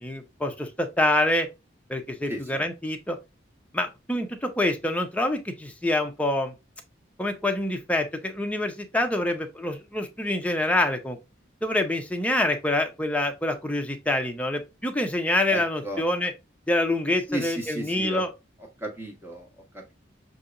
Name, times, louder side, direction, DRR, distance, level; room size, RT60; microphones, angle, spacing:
voice 1, 0.0-1.5 1.9-3.2 3.7-6.5 7.2-11.2 11.6-16.3 16.7-18.3, left 1 dB, 5° left, 0.6 m, -26 dB
voice 2, 2.3-2.6 15.5-16.0 17.3-18.2 18.8-19.5 19.7-19.9, equal, 10° right, 1.3 m, -34 dB
6.6 x 2.8 x 2.5 m
head